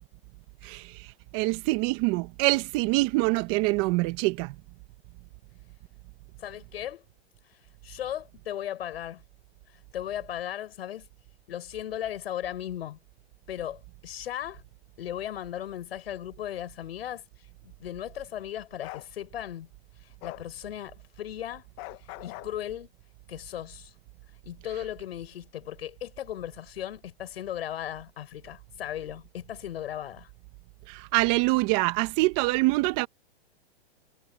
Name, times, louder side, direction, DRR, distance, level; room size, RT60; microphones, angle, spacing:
voice 1, 0.6-4.5 30.9-33.1, right 23 dB, 35° right, 1.5 m, -25 dB
voice 2, 6.4-7.0 7.5-9.2 9.7-11.1 11.5-13.0 13.5-14.6 15.0-19.7 20.0-21.6 22.0-22.9 23.3-23.9 24.4-30.3, left 11 dB, 70° left, 8.0 m, -37 dB
Bark, 18.8-19.1 20.2-20.5 21.8-22.5, left 22 dB, 30° left, 1.3 m, -41 dB
hypercardioid pair, 145°, 32 cm